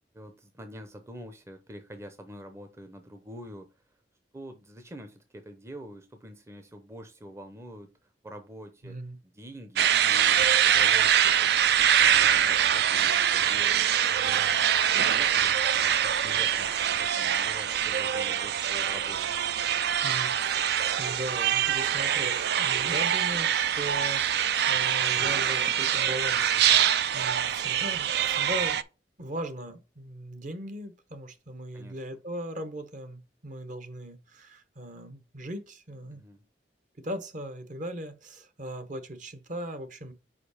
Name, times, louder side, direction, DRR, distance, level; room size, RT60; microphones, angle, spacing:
voice 1, 0.1-3.8 4.3-7.9 8.2-14.4 15.2-15.6 16.0-19.3 26.6-26.9 31.7-32.0 36.1-36.4, equal, 15° right, 0.6 m, -46 dB
voice 2, 8.8-9.2 20.0-26.6 27.1-28.8 29.2-36.2 37.0-40.1, right 1 dB, 45° right, 1.0 m, -38 dB
sound 1, 9.8-28.8, right 9 dB, 65° right, 0.4 m, -24 dB
5.0 x 4.8 x 4.8 m
head